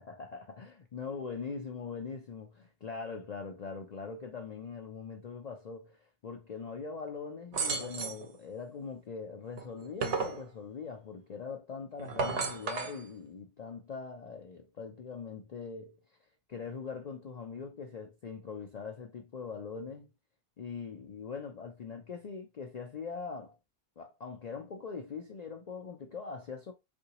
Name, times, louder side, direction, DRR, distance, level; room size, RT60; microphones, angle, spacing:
voice 1, 0.0-20.1 20.6-23.6 24.0-26.7, left 5 dB, 60° left, 0.4 m, -42 dB
sound 1, 7.5-8.3 9.6-10.4 12.0-13.0, right 5 dB, 75° right, 1.0 m, -33 dB
3.7 x 2.6 x 2.8 m
omnidirectional pair, 1.2 m